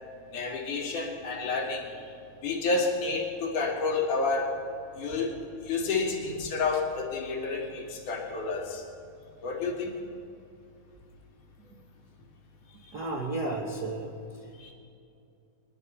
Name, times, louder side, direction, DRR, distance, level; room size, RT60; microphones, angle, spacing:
voice 1, 0.3-1.9 2.4-4.6 5.0-5.3 5.6-8.8 9.4-9.9 14.6-14.7, left 3 dB, 85° left, -1 dB, 3.5 m, -30 dB
voice 2, 12.9-14.1, right 2 dB, 60° right, -1 dB, 1.0 m, -32 dB
21.0 x 11.5 x 5.6 m, 2.6 s
omnidirectional pair, 3.5 m